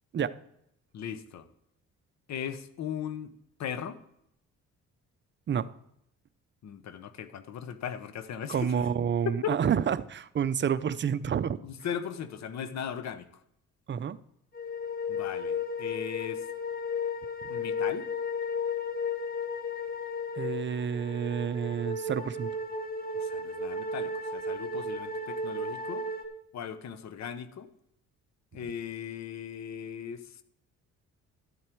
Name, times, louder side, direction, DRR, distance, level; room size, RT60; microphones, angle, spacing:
voice 1, 0.9-1.5 2.3-3.3 3.6-4.0 6.6-8.7 9.3-9.6 11.6-13.3 15.1-16.4 17.5-18.1 23.1-26.0 26.5-27.7 28.5-30.3, left 8 dB, 60° left, 0.9 m, -38 dB
voice 2, 8.5-11.6 13.9-14.2 20.3-22.5, right 8 dB, 40° right, 0.6 m, -29 dB
sound 1, 14.5-26.3, left 3 dB, 30° left, 1.4 m, -34 dB
12.5 x 7.7 x 4.6 m
cardioid pair, 90°, 30 cm